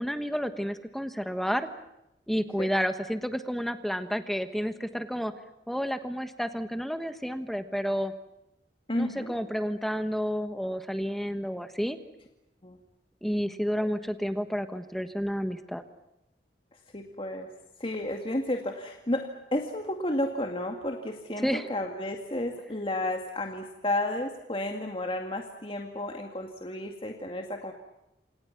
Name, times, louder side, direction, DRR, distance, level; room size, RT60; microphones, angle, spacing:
voice 1, 0.0-1.7 2.3-5.3 5.7-8.1 8.9-12.0 13.2-15.8 21.4-21.7, equal, ahead, 9 dB, 1.3 m, -30 dB
voice 2, 8.9-9.4 12.6-12.8 16.7-17.5 17.8-27.7, left 1 dB, 30° left, 3 dB, 2.1 m, -32 dB
28.0 x 28.0 x 5.9 m, 0.88 s
head